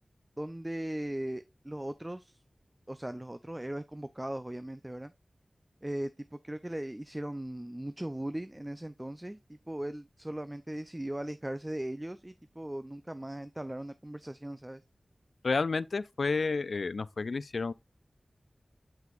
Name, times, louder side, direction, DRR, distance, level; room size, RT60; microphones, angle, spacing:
voice 1, 0.4-2.3 2.9-5.1 5.8-6.1 6.4-9.4 9.7-14.8, right 1 dB, 15° right, 0.4 m, -38 dB
voice 2, 15.4-17.7, left 4 dB, 85° left, 0.3 m, -30 dB
7.6 x 5.8 x 2.4 m
wide cardioid pair, 60°, 0 cm